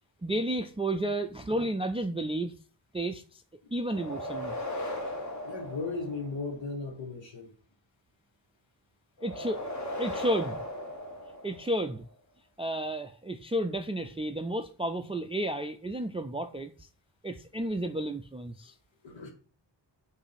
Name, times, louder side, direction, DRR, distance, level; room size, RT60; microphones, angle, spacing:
voice 1, 0.2-2.5 2.9-3.4 3.7-4.5 9.2-10.6 11.4-12.0 12.6-16.9 17.2-18.7, right 1 dB, 15° right, 0.3 m, -32 dB
sound 1, 3.8-6.6 9.2-11.9, left 1 dB, 40° left, 1.3 m, -37 dB
voice 2, 5.4-7.5 19.0-19.3, left 3 dB, 85° left, 1.4 m, -36 dB
6.8 x 2.7 x 5.7 m
wide cardioid pair, 145°, 44 cm